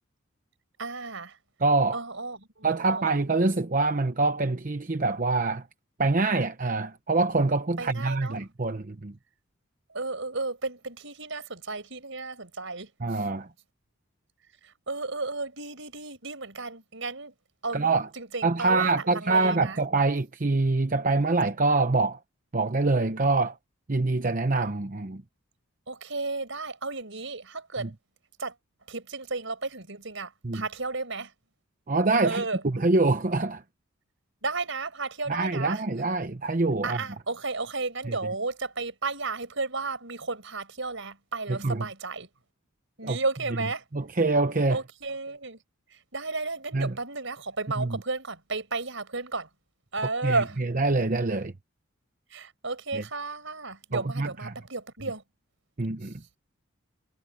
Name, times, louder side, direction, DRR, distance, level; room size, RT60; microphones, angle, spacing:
voice 1, 0.8-1.4 1.9-3.1 7.8-8.4 9.9-13.2 14.6-17.3 17.6-19.8 25.9-27.9 28.4-28.5 28.9-31.3 32.2-32.6 34.4-35.8 36.8-42.3 43.0-43.8 44.7-45.6 46.1-49.5 49.9-50.6 52.3-55.2, right 3 dB, 65° right, 5.7 m, -33 dB
voice 2, 1.6-2.0 2.6-5.7 6.0-9.1 13.0-13.5 17.7-18.1 18.4-22.2 22.5-23.6 23.9-25.2 27.8-27.9 30.4-30.6 31.9-33.6 35.3-37.0 38.1-38.2 41.6-41.9 43.0-43.2 43.9-44.8 46.7-46.9 47.8-48.0 50.2-51.5 52.9-53.0 53.9-54.5 55.8-56.1, right 3 dB, 40° right, 0.8 m, -25 dB
head